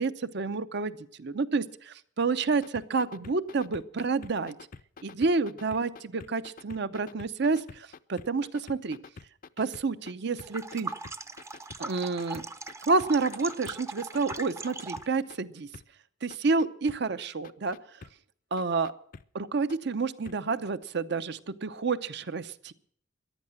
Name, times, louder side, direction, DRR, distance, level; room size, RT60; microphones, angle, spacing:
voice 1, 0.0-4.5 5.0-9.0 9.6-10.9 11.8-12.4 12.8-15.7 16.2-17.8 18.5-18.9 19.3-22.7, right 4 dB, 65° right, 13 dB, 0.7 m, -29 dB
sound 1, 2.5-10.1 10.4-12.7 13.0-15.4 15.7-15.8 16.3-17.0 17.4-18.1 18.6-19.2 19.7-19.8 20.3-20.4 20.8-20.9, left 4 dB, 50° left, 0.5 m, -47 dB
sound 2, 10.4-15.2, right 3 dB, 15° right, 0.6 m, -40 dB
14.5 x 11.0 x 7.5 m, 0.62 s
head